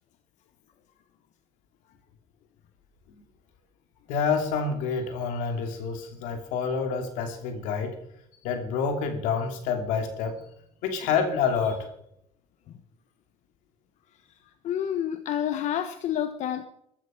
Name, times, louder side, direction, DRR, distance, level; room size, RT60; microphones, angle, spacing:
voice 1, 4.1-8.0 8.4-10.4 10.8-11.9, left 5 dB, 90° left, 6 dB, 2.7 m, -28 dB
voice 2, 14.6-16.6, left 10 dB, 70° left, 9 dB, 1.2 m, -28 dB
15.0 x 13.0 x 5.5 m, 0.74 s
cardioid pair, 90°, 13 cm